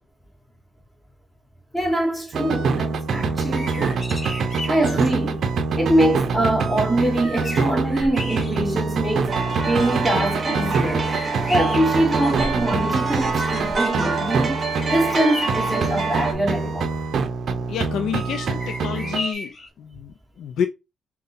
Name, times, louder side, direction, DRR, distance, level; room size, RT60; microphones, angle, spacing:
voice 1, 1.7-4.0 4.7-5.5 5.8-11.1 11.5-16.9, right 1 dB, 5° left, 2.0 m, -23 dB
sound 1, 2.3-15.2 15.5-19.3, right 4 dB, 60° right, 0.6 m, -25 dB
sound 2, 3.5-5.2 6.5-6.6 7.0-8.9 9.4-9.5 10.7-12.8 13.1-14.0 14.7-15.9 18.3-19.7, left 1 dB, 30° left, 1.6 m, -35 dB
sound 3, 9.3-16.3, right 4 dB, 35° right, 1.0 m, -26 dB
voice 2, 17.7-20.7, left 8 dB, 75° left, 0.4 m, -29 dB
5.4 x 2.3 x 2.5 m
cardioid pair, 90°, 0 cm